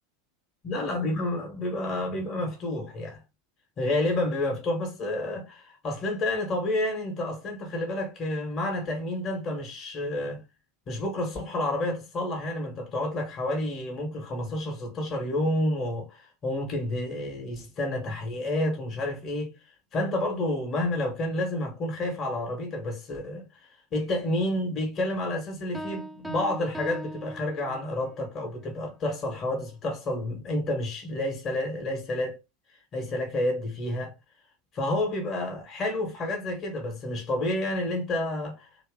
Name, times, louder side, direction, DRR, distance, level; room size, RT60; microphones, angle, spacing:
voice 1, 0.6-3.2 3.8-10.4 10.9-19.5 19.9-23.5 23.9-32.4 32.9-34.1 34.7-38.7, left 1 dB, 35° left, 1.3 m, -29 dB
Piano, 25.7-28.1, right 1 dB, 5° right, 0.5 m, -39 dB
2.9 x 2.9 x 3.6 m
figure-of-eight pair, 80°, 0 cm